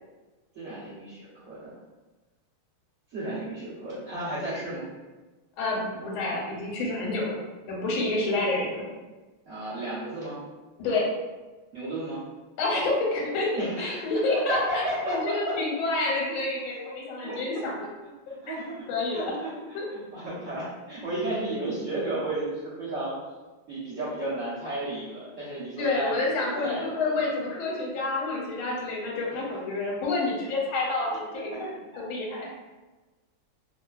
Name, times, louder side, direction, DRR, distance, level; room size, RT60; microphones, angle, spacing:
voice 1, 0.5-1.7 3.1-4.9 9.4-10.4 11.7-12.2 13.5-14.1 14.5-15.6 17.2-17.4 18.3-18.7 19.1-23.1 23.7-26.1 26.5-27.1 31.1-31.2 31.5-31.7 32.3-32.6, right 1 dB, 55° right, -13 dB, 0.9 m, -33 dB
voice 2, 5.6-7.4 7.7-8.8 10.8-11.1 12.6-17.7 18.9-19.3 19.7-19.8 25.8-31.6 32.0-32.6, left 2 dB, 85° left, -3 dB, 1.4 m, -28 dB
3.3 x 2.1 x 2.3 m, 1.2 s
omnidirectional pair, 2.3 m